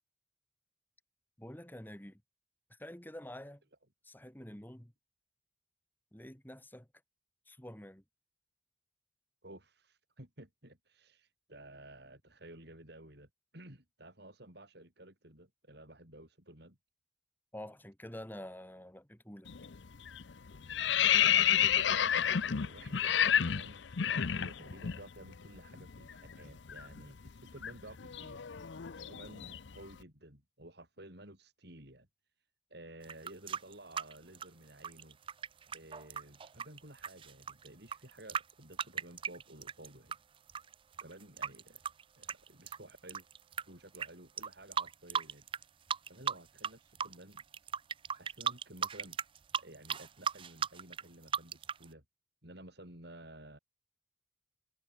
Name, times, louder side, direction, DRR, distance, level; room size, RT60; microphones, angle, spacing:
voice 1, 1.4-2.2 2.7-3.6 4.0-4.9 6.1-6.9 7.5-8.0 17.5-19.5, left 1 dB, 10° left, 2.0 m, -48 dB
voice 2, 9.4-16.8 20.8-28.4 28.9-32.1 32.7-35.2 35.7-40.2 41.0-41.8 42.2-43.3 43.7-45.5 46.1-47.4 48.1-49.2 49.6-52.0 52.4-53.6, right 1 dB, 60° right, 7.6 m, -54 dB
sound 1, 19.5-19.8 20.1-25.0 25.3-25.5 25.8-29.8, left 9 dB, 70° left, 0.6 m, -30 dB
sound 2, 33.0-40.2 40.5-43.6 43.9-44.1 44.4-45.6 45.9-46.7 47.0-51.8, right 7 dB, 30° right, 0.4 m, -37 dB
head